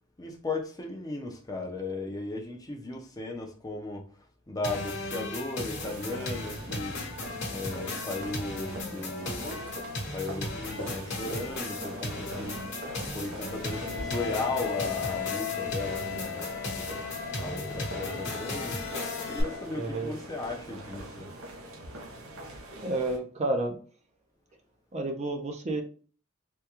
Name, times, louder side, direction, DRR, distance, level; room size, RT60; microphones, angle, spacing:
voice 1, 0.2-4.1 4.5-7.0 7.5-9.7 10.1-12.6 13.1-17.0 17.4-18.8 19.3-21.3, left 2 dB, 15° left, 0.5 m, -36 dB
sound 1, 4.6-19.4, left 2 dB, 55° left, 1.0 m, -36 dB
sound 2, 5.8-23.2, right 1 dB, 85° right, 0.9 m, -42 dB
Wind instrument woodwind instrument, 13.6-19.7, left 14 dB, 85° left, 0.7 m, -38 dB
voice 2, 19.7-20.1 22.8-23.8 24.9-25.8, right 2 dB, 30° right, 0.5 m, -30 dB
3.5 x 2.2 x 2.9 m
head